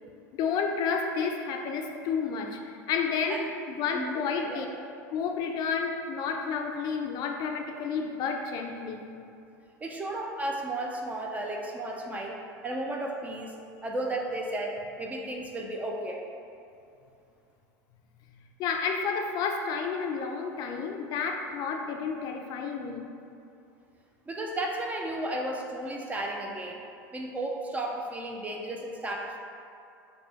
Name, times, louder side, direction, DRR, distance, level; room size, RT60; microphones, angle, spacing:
voice 1, 0.3-3.4 3.7-4.7 5.1-9.1 18.6-23.1, left 5 dB, 50° left, 3 dB, 0.4 m, -31 dB
voice 2, 3.9-4.7 9.8-13.6 13.8-16.2 24.3-26.8 27.1-29.4, right 1 dB, 15° right, 1 dB, 0.3 m, -34 dB
3.4 x 2.1 x 3.9 m, 2.6 s
supercardioid pair, 115°, 9 cm